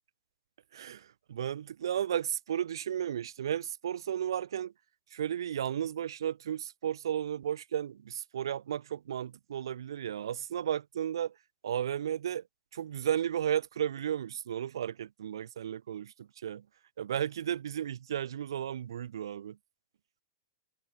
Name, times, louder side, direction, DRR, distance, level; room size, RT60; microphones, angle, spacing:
voice 1, 0.7-4.7 5.1-11.3 11.6-12.4 12.7-16.6 17.0-19.6, right 10 dB, 75° right, 0.5 m, -34 dB
hypercardioid pair, 110°, 2 cm